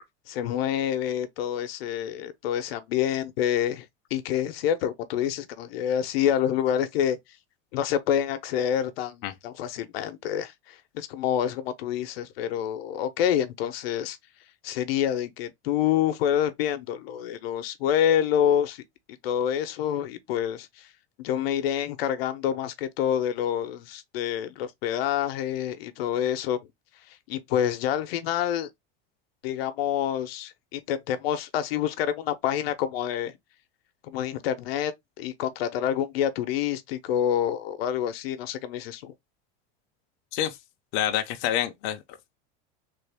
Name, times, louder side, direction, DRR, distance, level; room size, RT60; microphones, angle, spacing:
voice 1, 0.3-3.9 4.1-7.2 7.7-14.2 14.6-18.8 19.2-20.7 21.2-26.6 27.3-28.7 29.4-33.3 34.1-39.1, left 10 dB, 85° left, 0.7 m, -27 dB
voice 2, 40.9-42.4, left 11 dB, 50° left, 0.5 m, -28 dB
3.3 x 2.4 x 3.4 m
supercardioid pair, 160°, 29 cm